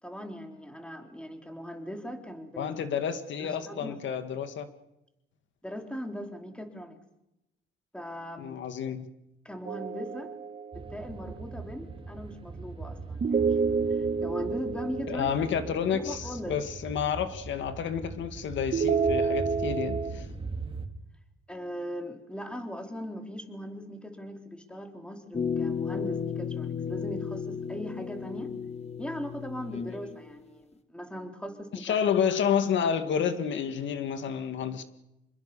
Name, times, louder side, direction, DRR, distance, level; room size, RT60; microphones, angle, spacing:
voice 1, 0.0-2.9 3.4-4.2 5.6-7.0 7.9-8.6 9.4-10.3 10.7-13.6 13.9-15.3 15.9-16.6 21.5-28.5 29.0-32.0, equal, 5° left, 3.8 m, -39 dB
voice 2, 2.6-4.7 8.4-9.1 15.1-20.3 31.7-34.8, left 7 dB, 70° left, 2.0 m, -30 dB
sound 1, 9.6-11.2 13.2-16.4 18.7-20.1, right 5 dB, 40° right, 2.2 m, -29 dB
sound 2, 10.7-20.9, right 4 dB, 25° right, 3.0 m, -40 dB
sound 3, 25.3-30.3, left 6 dB, 30° left, 2.1 m, -34 dB
27.0 x 21.5 x 7.0 m
cardioid pair, 90°, 20 cm